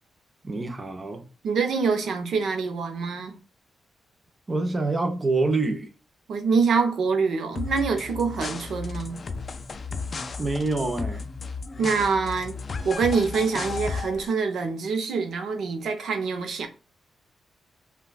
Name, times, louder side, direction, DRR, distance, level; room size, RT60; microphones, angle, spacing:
voice 1, 0.4-1.2 4.5-5.9 10.4-11.3, right 3 dB, 25° right, 0.5 m, -26 dB
voice 2, 1.4-3.3 6.3-9.2 11.8-12.6 12.8-16.7, right 5 dB, 70° right, 0.6 m, -25 dB
sound 1, 7.6-14.3, left 4 dB, 40° left, 0.3 m, -34 dB
5.5 x 2.2 x 2.3 m
cardioid pair, 115°, 0 cm